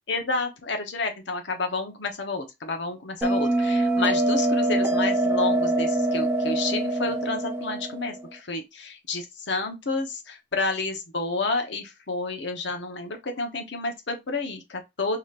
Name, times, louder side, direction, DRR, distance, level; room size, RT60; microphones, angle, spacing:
voice 1, 0.1-15.2, left 3 dB, 65° left, 0.9 m, -30 dB
Bell, 3.2-8.3, right 1 dB, 10° right, 0.5 m, -24 dB
4.9 x 2.9 x 2.4 m
head